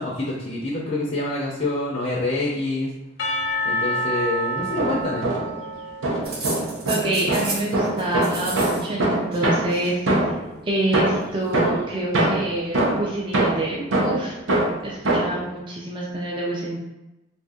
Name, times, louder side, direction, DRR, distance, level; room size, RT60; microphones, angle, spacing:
voice 1, 0.0-2.9 3.6-5.3, left 2 dB, 45° left, -3 dB, 0.6 m, -26 dB
Percussion / Church bell, 3.2-7.1, equal, 75° left, 0.7 m, -28 dB
sound 1, 4.6-5.7 6.0-10.5 10.9-15.5, right 1 dB, 85° right, 0.7 m, -23 dB
sound 2, 6.2-7.7 8.0-8.8 9.1-9.9 11.0-11.7, right 2 dB, 50° right, 0.8 m, -34 dB
voice 2, 6.9-10.0 10.6-14.4 14.8-16.8, right 1 dB, 25° right, -4 dB, 0.4 m, -27 dB
2.7 x 2.5 x 3.6 m, 0.97 s
head